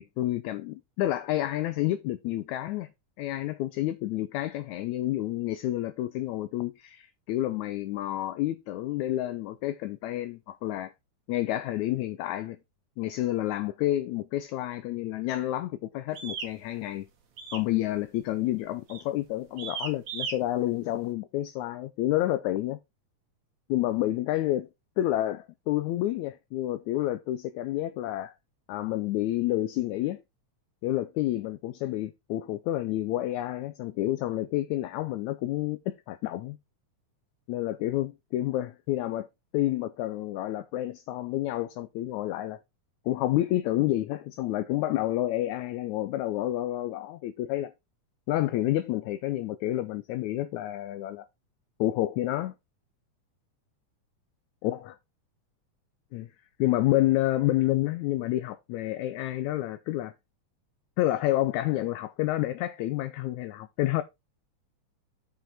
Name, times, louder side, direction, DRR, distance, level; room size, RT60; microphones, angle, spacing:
voice 1, 0.0-2.9 3.2-10.9 11.3-12.6 13.0-17.1 17.5-22.8 23.7-24.7 25.0-28.3 28.7-30.2 30.8-36.6 37.5-39.3 39.5-42.6 43.1-47.7 48.3-51.3 51.8-52.5 54.6-54.9 56.1-56.3 56.6-60.1 61.0-64.0, left 15 dB, 75° left, 1.9 m, -29 dB
sound 1, 16.1-16.5 17.4-17.7 18.0-18.3 18.9-19.1 19.6-20.4, right 6 dB, 60° right, 2.7 m, -36 dB
7.7 x 5.6 x 4.2 m
omnidirectional pair, 3.6 m